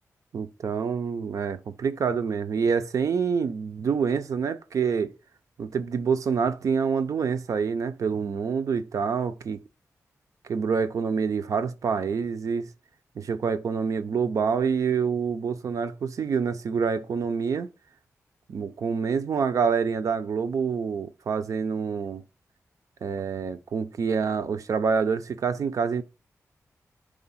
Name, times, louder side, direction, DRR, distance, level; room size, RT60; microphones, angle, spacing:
voice 1, 0.3-5.1 5.6-9.6 10.5-12.7 13.2-17.7 18.5-22.2 23.0-26.0, right 6 dB, 75° right, 0.6 m, -27 dB
4.9 x 3.4 x 5.6 m
wide cardioid pair, 110°, 6 cm